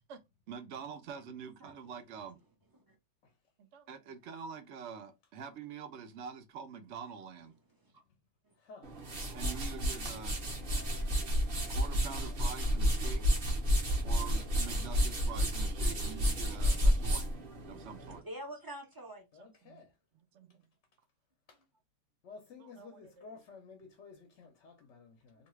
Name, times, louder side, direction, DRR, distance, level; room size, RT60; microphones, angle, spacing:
voice 1, 0.5-2.4 3.6-7.5 9.3-10.4 11.7-13.2 14.0-17.3 17.7-18.2 19.4-19.9 20.1-20.6 22.6-23.3, right 6 dB, 75° right, 0.9 m, -46 dB
sound 1, 8.8-18.2, equal, 55° right, 1.0 m, -31 dB
voice 2, 9.8-10.9 15.2-15.3 17.7-19.3 21.5-21.6 23.3-23.4, right 1 dB, 30° right, 0.4 m, -49 dB
voice 3, 19.3-19.9 22.3-25.5, left 4 dB, 85° left, 1.0 m, -53 dB
2.7 x 2.3 x 3.0 m
omnidirectional pair, 1.2 m